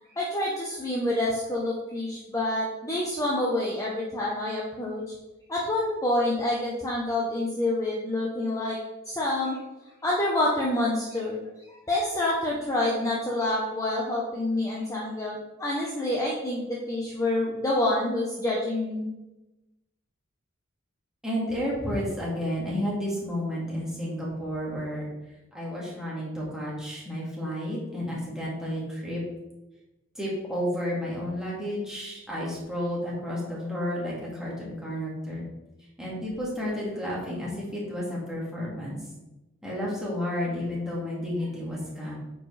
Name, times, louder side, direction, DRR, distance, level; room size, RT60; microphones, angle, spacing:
voice 1, 0.2-5.1 5.5-8.8 9.1-9.6 10.0-11.4 11.9-19.1, left 1 dB, 15° left, -4 dB, 0.8 m, -27 dB
voice 2, 21.2-25.1 25.5-29.2 30.2-35.4 36.0-39.0 39.6-42.1, equal, 5° right, -6 dB, 2.0 m, -31 dB
8.7 x 4.7 x 3.3 m, 1.0 s
head